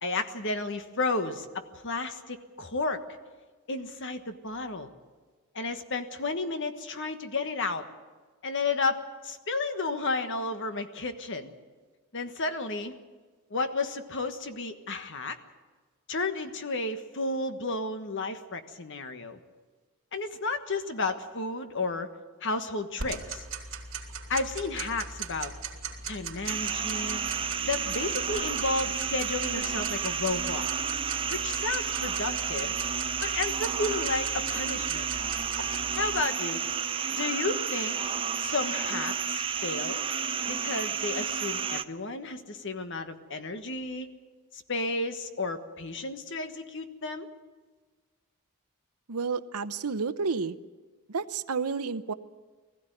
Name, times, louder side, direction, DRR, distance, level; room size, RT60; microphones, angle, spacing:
voice 1, 0.0-3.0 3.7-4.9 5.5-7.8 8.4-11.5 12.1-12.9 13.5-15.4 16.1-19.4 20.1-22.1 22.4-23.4 24.3-25.5 26.1-27.2 27.6-30.7 31.3-32.7 33.2-35.1 36.0-36.6 37.1-38.0 38.4-40.0 40.5-44.1 44.5-47.3, left 3 dB, 55° left, 8 dB, 1.4 m, -32 dB
Tick-tock, 23.0-36.2, right 5 dB, 60° right, 3.2 m, -39 dB
sound 1, 26.5-41.8, right 7 dB, 25° right, 0.6 m, -31 dB
voice 2, 49.1-50.6 51.1-52.1, right 5 dB, 85° right, 12 dB, 0.8 m, -30 dB
20.0 x 15.0 x 9.1 m, 1.4 s
head